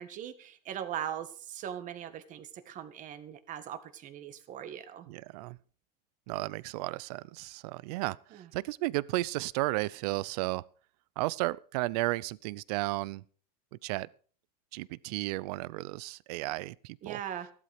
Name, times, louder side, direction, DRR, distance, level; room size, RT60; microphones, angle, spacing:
voice 1, 0.0-5.1 8.3-8.5 17.0-17.5, right 10 dB, 35° right, 1.9 m, -40 dB
voice 2, 5.1-5.6 6.3-10.6 11.2-13.2 13.8-14.1 14.7-17.2, right 20 dB, 65° right, 0.7 m, -33 dB
14.5 x 12.5 x 5.0 m
supercardioid pair, 130°, 21 cm